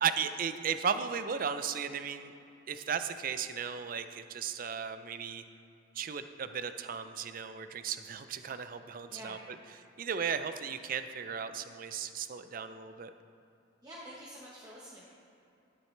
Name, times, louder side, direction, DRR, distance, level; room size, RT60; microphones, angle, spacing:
voice 1, 0.0-2.3 2.7-5.4 5.9-13.1, right 7 dB, 45° right, 10 dB, 0.4 m, -35 dB
voice 2, 9.1-9.4 13.8-15.0, equal, 20° right, -7 dB, 1.1 m, -47 dB
12.0 x 9.5 x 3.3 m, 2.8 s
head